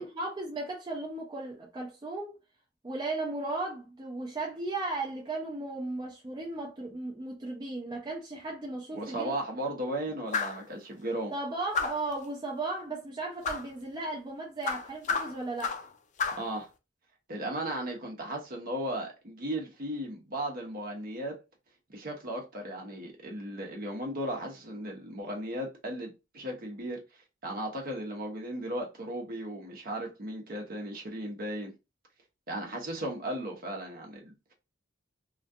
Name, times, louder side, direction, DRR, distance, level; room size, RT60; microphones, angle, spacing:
voice 1, 0.0-2.4 2.8-9.4 11.3-15.7, right 2 dB, 20° right, 0.4 m, -36 dB
voice 2, 8.9-11.3 16.4-16.7 17.3-21.3 21.9-27.0 27.4-31.7 32.5-34.5, right 1 dB, 50° right, 0.8 m, -36 dB
sound 1, 10.3-10.6 11.7-12.1 13.4-13.7 14.6-15.9 16.2-16.5, left 5 dB, 40° left, 0.4 m, -31 dB
2.3 x 2.2 x 2.6 m
head